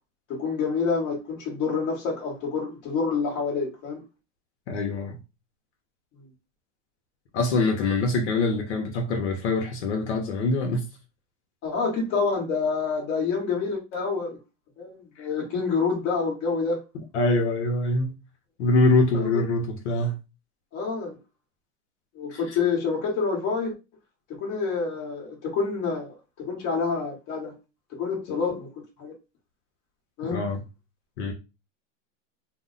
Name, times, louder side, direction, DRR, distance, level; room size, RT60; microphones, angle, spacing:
voice 1, 0.3-4.0 6.2-6.3 11.6-14.4 14.8-16.8 19.1-19.3 20.7-21.2 22.1-23.7 24.3-27.5 27.9-28.7 29.0-29.1 30.2-30.4, left 5 dB, 25° left, 1.0 m, -27 dB
voice 2, 4.7-5.2 7.3-10.8 17.1-18.1 18.6-20.1 22.3-22.4 30.3-30.6 31.2-31.3, left 2 dB, 60° left, 0.8 m, -24 dB
2.6 x 2.1 x 3.8 m
supercardioid pair, 160°, 38 cm